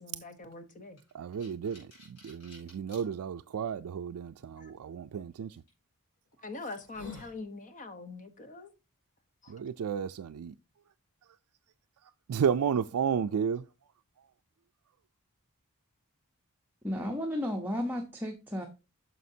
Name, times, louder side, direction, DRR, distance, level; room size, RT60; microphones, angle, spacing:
voice 1, 0.0-1.0 4.6-4.7 6.4-8.7 9.4-9.5, left 3 dB, 35° left, 1.0 m, -43 dB
sound 1, 1.0-3.0 3.7-3.8 5.5-5.7 6.3-6.4 6.7-7.4, left 3 dB, 70° left, 4.2 m, -50 dB
voice 2, 1.1-5.6 9.5-10.6 12.0-13.7, right 7 dB, 70° right, 0.3 m, -32 dB
voice 3, 16.8-18.7, left 1 dB, 10° right, 0.8 m, -33 dB
9.4 x 6.4 x 2.7 m
head